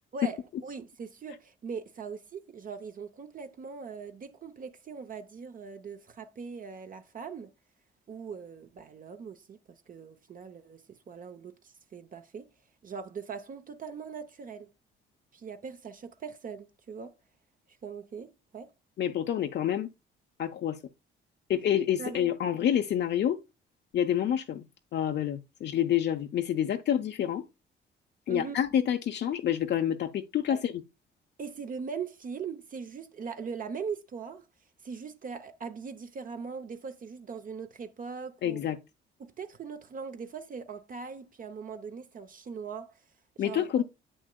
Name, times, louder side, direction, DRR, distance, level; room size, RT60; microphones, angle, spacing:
voice 1, 0.1-7.5 8.1-12.5 12.8-14.7 15.3-17.2 17.8-18.7 22.0-22.3 28.3-28.6 30.5-30.6 31.4-34.5 34.8-38.6 39.2-43.1 43.4-43.7, right 5 dB, 45° right, 0.6 m, -41 dB
voice 2, 19.0-19.9 20.4-20.8 21.5-23.4 23.9-24.6 24.9-27.5 28.3-30.8 38.4-38.8 43.4-43.8, left 10 dB, 60° left, 0.6 m, -28 dB
7.5 x 6.2 x 2.2 m
cardioid pair, 90°, 20 cm